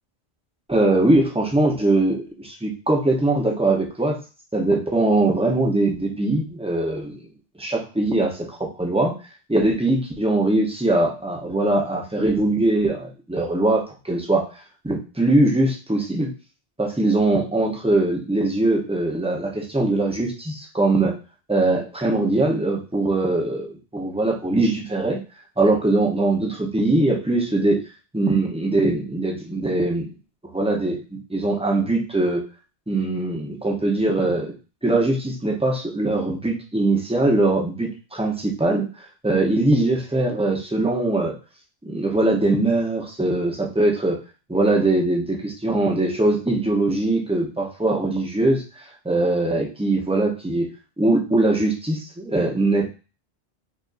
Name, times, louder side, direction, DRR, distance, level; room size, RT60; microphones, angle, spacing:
voice 1, 0.7-4.2 4.5-7.2 7.6-9.1 9.5-16.3 16.8-21.2 21.5-25.2 25.6-27.8 28.1-30.1 30.4-32.4 32.9-34.5 34.8-41.4 41.8-44.2 44.5-50.7 51.0-52.8, right 2 dB, 5° right, 0 dB, 0.6 m, -21 dB
4.8 x 2.6 x 2.4 m, 0.33 s
omnidirectional pair, 1.1 m